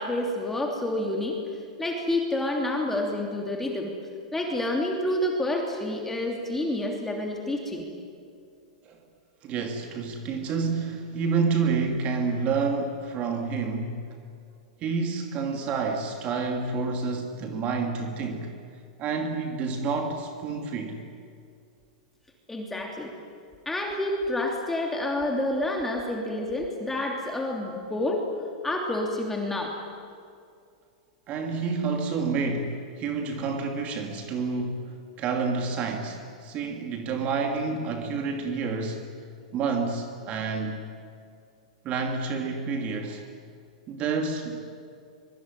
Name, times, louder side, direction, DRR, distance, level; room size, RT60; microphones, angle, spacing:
voice 1, 0.0-1.4 1.8-3.9 4.3-7.8 22.5-23.1 23.6-28.2 28.6-29.8, left 1 dB, 5° left, 1 dB, 3.0 m, -28 dB
voice 2, 9.4-14.0 14.8-18.5 19.0-21.0 31.3-34.9 35.2-39.0 39.5-40.8 41.8-43.2 43.9-44.6, right 4 dB, 35° right, 3 dB, 2.8 m, -29 dB
25.0 x 23.0 x 9.9 m, 2.3 s
hypercardioid pair, 140°, 4 cm